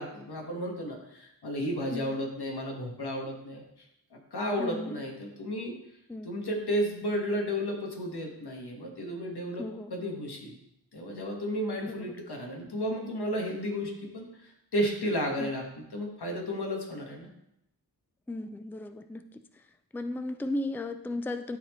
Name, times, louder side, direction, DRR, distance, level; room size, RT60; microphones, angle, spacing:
voice 1, 0.0-3.6 4.1-5.7 6.2-10.6 10.9-17.3, equal, 85° left, 0 dB, 1.5 m, -33 dB
voice 2, 4.6-5.0 6.1-6.3 9.6-9.9 11.8-12.1 15.4-15.5 18.3-19.2 19.5-19.7 19.9-21.6, left 2 dB, 5° left, 9 dB, 0.4 m, -35 dB
12.0 x 4.1 x 3.1 m, 0.82 s
wide cardioid pair, 70°, 38 cm